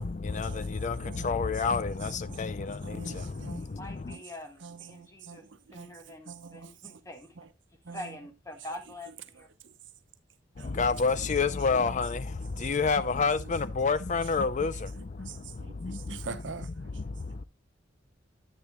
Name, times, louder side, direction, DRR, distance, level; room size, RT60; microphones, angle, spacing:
voice 1, 0.0-4.2 10.6-16.4 16.8-17.4, left 4 dB, 40° left, 0.5 m, -30 dB
voice 2, 1.0-1.5 2.2-2.4 2.8-3.6 4.1-4.2 4.6-5.9 6.3-7.0 7.4-7.5 7.8-8.2 9.6-9.7 10.6-10.8 15.2-16.9, right 5 dB, 80° right, 0.9 m, -45 dB
voice 3, 3.6-5.4 5.7-7.4 7.9-9.5, left 1 dB, 15° left, 1.6 m, -44 dB
9.8 x 9.4 x 2.2 m
head